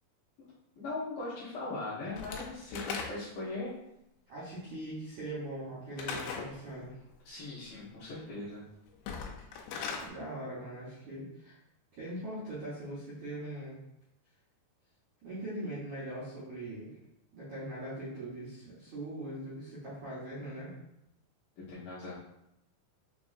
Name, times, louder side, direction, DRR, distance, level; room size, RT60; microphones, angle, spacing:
voice 1, 0.8-3.7 7.3-8.6 21.6-22.1, left 2 dB, 70° left, -9 dB, 2.2 m, -39 dB
Slam / Wood, 2.2-3.5 6.0-6.5 8.9-10.1, left 5 dB, 90° left, 2.8 m, -38 dB
voice 2, 4.3-6.9 10.0-11.5 12.0-13.8 15.2-16.9 17.3-20.7, right 1 dB, 75° right, -9 dB, 1.7 m, -41 dB
6.2 x 2.6 x 2.4 m, 0.83 s
omnidirectional pair, 4.8 m